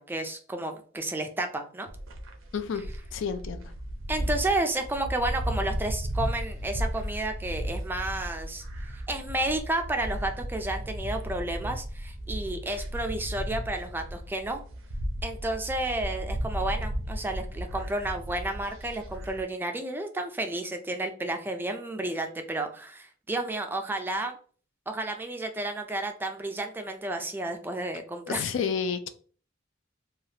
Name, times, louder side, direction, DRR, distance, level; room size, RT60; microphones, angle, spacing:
voice 1, 0.0-1.9 4.1-8.6 8.9-14.6 15.2-24.4 24.9-28.5, right 2 dB, 10° right, 5 dB, 0.3 m, -31 dB
sound 1, 1.9-19.4, equal, 85° right, 0.6 m, -35 dB
voice 2, 3.1-3.6 28.3-29.1, left 6 dB, 70° left, 9 dB, 0.4 m, -30 dB
3.2 x 2.3 x 2.7 m, 0.42 s
head